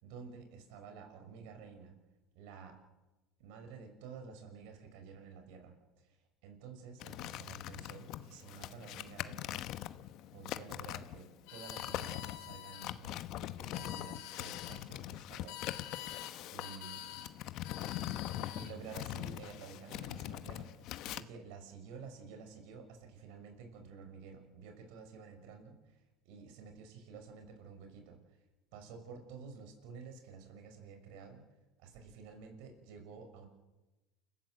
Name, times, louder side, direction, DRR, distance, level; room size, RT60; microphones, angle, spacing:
voice 1, 0.0-1.9 2.3-2.8 3.4-9.6 10.3-15.6 15.9-16.1 16.5-17.1 18.5-28.4 28.7-31.4 31.8-33.5, right 5 dB, 75° right, 5 dB, 6.0 m, -51 dB
sound 1, 7.0-21.2, left 13 dB, 55° left, 1.1 m, -42 dB
sound 2, 11.5-12.9 13.6-14.8 15.5-16.3 16.6-17.3 17.6-18.8, left 13 dB, 75° left, 3.6 m, -47 dB
29.0 x 15.5 x 7.8 m, 1.1 s
supercardioid pair, 130°, 0 cm